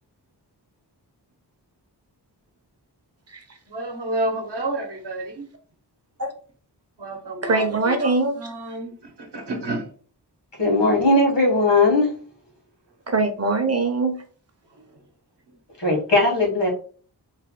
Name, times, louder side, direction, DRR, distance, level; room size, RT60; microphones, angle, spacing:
voice 1, 3.7-5.5 7.0-7.6 8.0-9.9 14.8-14.9, right 1 dB, 70° right, 3 dB, 0.8 m, -30 dB
voice 2, 7.4-8.5 13.1-14.2, right 3 dB, 35° right, 5 dB, 0.6 m, -22 dB
voice 3, 10.6-12.1 15.8-16.7, left 2 dB, 80° left, -2 dB, 1.5 m, -18 dB
3.1 x 2.1 x 3.0 m, 0.43 s
wide cardioid pair, 100°, 42 cm